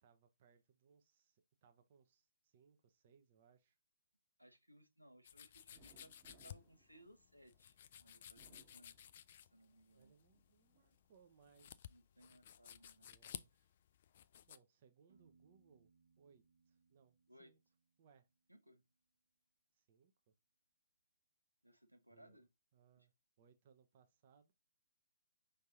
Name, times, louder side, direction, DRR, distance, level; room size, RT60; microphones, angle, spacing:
voice 1, 0.0-3.8 9.9-11.9 13.0-13.8 14.5-15.9 16.2-17.6 18.0-18.3 19.7-20.3 22.1-22.4 22.7-24.5, right 6 dB, 40° right, 0.6 m, -70 dB
voice 2, 4.4-8.9 9.5-10.1 11.9-13.1 17.3-17.5 18.5-18.8 21.6-22.5 23.0-23.1, right 1 dB, 90° right, 1.0 m, -65 dB
sound 1, 5.2-14.6, left 10 dB, 45° left, 0.3 m, -56 dB
sound 2, 5.7-7.7 8.2-9.5 10.0-10.9, right 3 dB, 15° right, 0.9 m, -69 dB
Piano, 15.1-18.8, right 5 dB, 70° right, 1.0 m, -74 dB
5.3 x 3.3 x 2.6 m
figure-of-eight pair, 130°, 0 cm